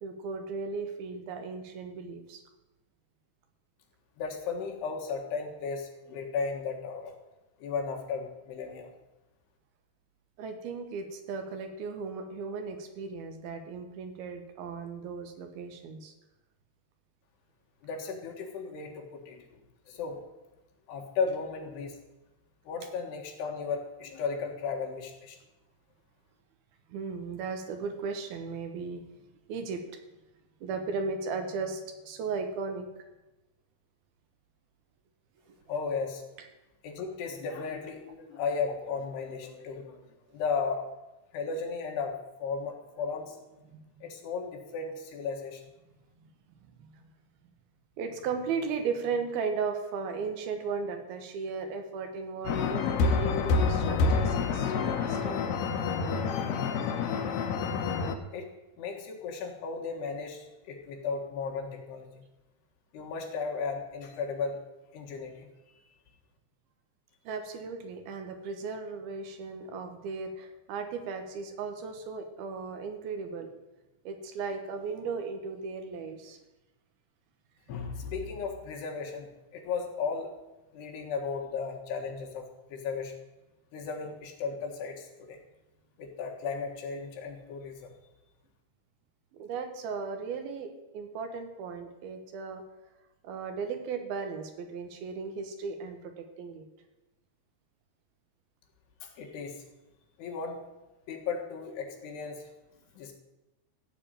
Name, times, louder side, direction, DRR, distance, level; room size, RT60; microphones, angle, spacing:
voice 1, 0.0-2.4 10.4-16.1 26.9-29.0 29.5-29.8 30.6-32.9 35.5-35.6 43.7-43.8 48.0-55.6 67.2-73.5 74.0-76.4 89.3-92.6 93.2-96.7, right 5 dB, 75° right, 6 dB, 3.1 m, -36 dB
voice 2, 4.2-7.1 7.6-8.9 17.8-19.4 19.9-20.2 20.9-22.0 22.7-25.4 35.7-36.2 36.8-40.0 40.3-40.8 41.3-43.4 44.0-45.6 58.3-58.5 58.8-62.1 62.9-64.6 64.9-65.5 77.7-80.3 80.7-82.4 82.7-83.1 83.7-85.4 86.0-87.9 99.0-99.6 100.2-100.6 101.1-102.4 103.0-103.1, left 5 dB, 85° left, 1 dB, 3.8 m, -35 dB
sound 1, 52.5-58.2, left 4 dB, 70° left, 2.3 m, -28 dB
14.0 x 5.2 x 9.0 m, 1.0 s
omnidirectional pair, 4.6 m